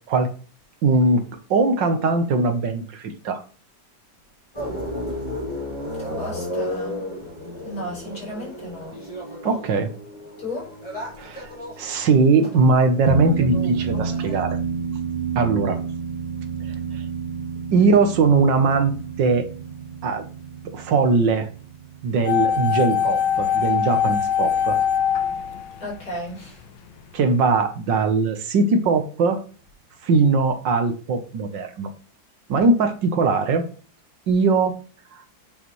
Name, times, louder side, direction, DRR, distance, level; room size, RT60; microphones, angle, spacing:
voice 1, 0.8-1.2 1.5-3.4 9.4-9.9 11.2-11.5 11.8-14.6 15.3-15.8 17.7-18.9 19.2-19.5 20.0-20.3 20.7-21.5 22.0-24.8 27.1-29.4 30.0-31.9 32.5-33.6 34.3-34.7, right 4 dB, 70° right, 8 dB, 1.7 m, -20 dB
sound 1, 4.5-14.4, left 1 dB, 15° left, 4.6 m, -33 dB
voice 2, 6.0-7.0 7.6-8.9 10.4-10.7 25.8-26.6, left 1 dB, 50° left, -4 dB, 4.9 m, -34 dB
sound 2, 13.1-23.8, right 5 dB, 25° right, 1.1 m, -29 dB
sound 3, 22.3-26.4 26.6-26.7, left 8 dB, 75° left, 1.5 m, -22 dB
8.4 x 7.0 x 3.2 m, 0.37 s
omnidirectional pair, 2.1 m